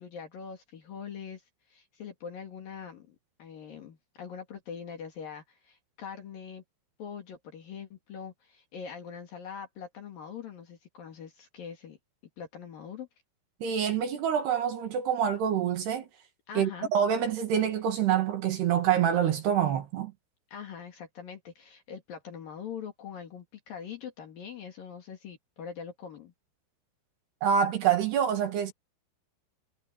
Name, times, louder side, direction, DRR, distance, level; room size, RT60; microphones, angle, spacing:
voice 1, 0.0-1.4 1.7-6.6 7.0-12.0 12.4-13.1 16.5-16.9 20.5-26.3, left 7 dB, 50° left, 3.3 m, -43 dB
voice 2, 13.6-16.1 16.6-20.1 27.4-28.7, right 8 dB, 60° right, 3.5 m, -26 dB
omnidirectional pair, 5.9 m